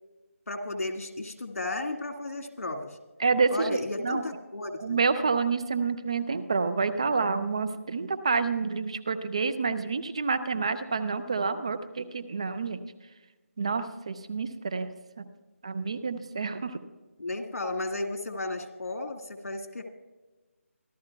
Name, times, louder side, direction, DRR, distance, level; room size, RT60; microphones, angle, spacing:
voice 1, 0.5-3.0 3.5-5.0 17.2-19.8, left 2 dB, 85° left, 5 dB, 2.0 m, -34 dB
voice 2, 3.2-4.2 4.8-12.8 13.6-14.9 15.2-15.3 15.6-16.8, right 4 dB, 25° right, 12 dB, 0.4 m, -28 dB
25.5 x 12.5 x 2.3 m, 1.2 s
figure-of-eight pair, 175°, 8 cm